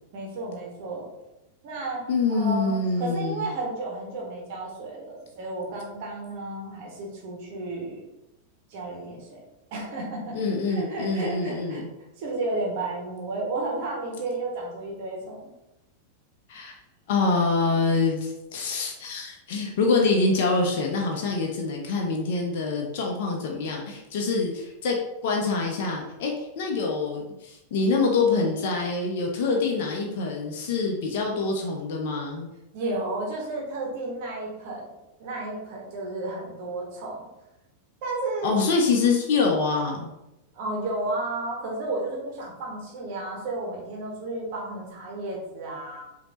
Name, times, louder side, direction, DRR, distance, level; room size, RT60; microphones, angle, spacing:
voice 1, 0.1-1.1 1.6-2.0 2.3-8.0 8.7-9.4 9.7-11.8 12.2-15.5 32.7-34.9 35.2-37.3 38.0-38.5 40.5-46.0, right 2 dB, 50° right, -2 dB, 1.5 m, -32 dB
voice 2, 2.1-3.5 10.3-11.9 16.5-16.8 17.1-25.0 25.2-32.5 38.4-40.1, left 3 dB, 50° left, 0 dB, 0.8 m, -25 dB
5.2 x 3.0 x 2.9 m, 0.94 s
figure-of-eight pair, 90°, 0 cm